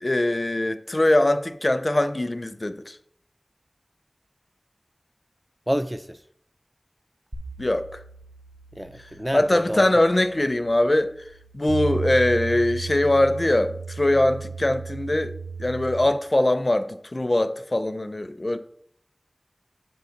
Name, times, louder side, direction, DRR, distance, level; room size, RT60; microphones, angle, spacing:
voice 1, 0.0-3.0 7.6-8.0 9.3-11.3 11.5-18.6, left 1 dB, 45° left, 0.5 m, -22 dB
voice 2, 5.7-6.2 8.7-9.9, equal, 10° right, 0.4 m, -28 dB
sound 1, 7.3-16.1, right 5 dB, 60° right, 1.5 m, -35 dB
8.0 x 3.9 x 6.4 m
wide cardioid pair, 45°, 0 cm